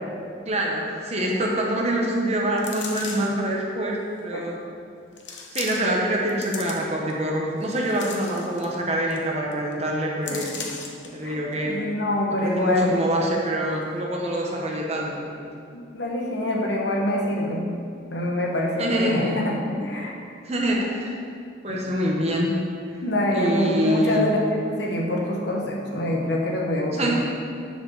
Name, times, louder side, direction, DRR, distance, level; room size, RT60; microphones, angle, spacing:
voice 1, 0.5-4.6 5.5-10.5 11.1-11.8 12.4-15.5 18.8-19.2 20.4-21.1 21.6-22.5 23.3-24.2 26.9-27.1, right 1 dB, 35° right, -1 dB, 1.1 m, -25 dB
sound 1, 2.6-3.4 4.2-4.3 5.2-6.0 6.3-7.1 7.6-8.8 9.1-9.2 9.5-9.7 10.2-11.1 11.5-11.6, left 5 dB, 90° left, 1.0 m, -36 dB
voice 2, 11.2-13.0 15.7-17.7 18.1-20.2 20.8-20.9 21.7-21.8 23.0-27.1, left 1 dB, 70° left, -1 dB, 1.2 m, -25 dB
6.9 x 5.1 x 6.5 m, 2.4 s
head